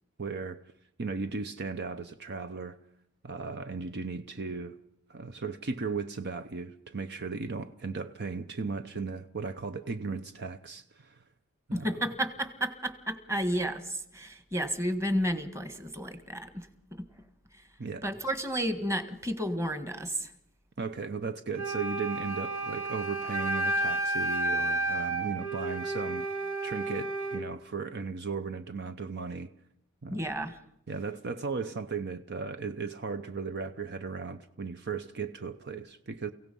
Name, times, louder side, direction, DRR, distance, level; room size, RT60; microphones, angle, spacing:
voice 1, 0.2-0.6 1.0-2.8 3.2-4.8 5.1-11.2 11.7-11.9 17.8-18.1 20.8-26.2 26.6-29.5 30.0-30.2 30.9-36.3, right 4 dB, 50° right, 0.7 m, -36 dB
voice 2, 11.7-17.1 18.0-20.3 30.1-30.6, equal, 15° right, 1.6 m, -32 dB
Wind instrument woodwind instrument, 21.5-27.4, right 1 dB, 70° right, 3.6 m, -31 dB
29.5 x 16.5 x 5.5 m
head